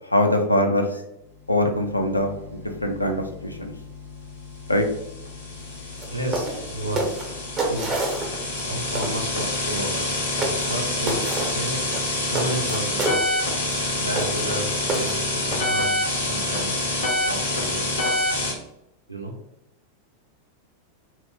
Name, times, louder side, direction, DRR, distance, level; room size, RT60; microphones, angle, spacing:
voice 1, 0.1-0.9 1.5-3.7 4.7-4.8, left 1 dB, 85° left, 4 dB, 0.4 m, -22 dB
sound 1, 1.7-18.5, left 2 dB, 70° left, 0.8 m, -27 dB
sound 2, 5.9-6.1 6.3-6.6 7.0-8.6 9.0-9.2 10.0-10.1 10.4-10.8 11.1-11.5 11.9-13.2 13.7-13.8 14.2-14.5 14.9-15.6, right 2 dB, 25° right, 0.7 m, -28 dB
voice 2, 6.1-7.0 7.6-10.4 10.7-16.8 17.2-18.1 19.1-19.3, right 1 dB, 85° right, -1 dB, 0.6 m, -33 dB
2.9 x 2.1 x 3.1 m, 0.84 s
figure-of-eight pair, 90°, 0 cm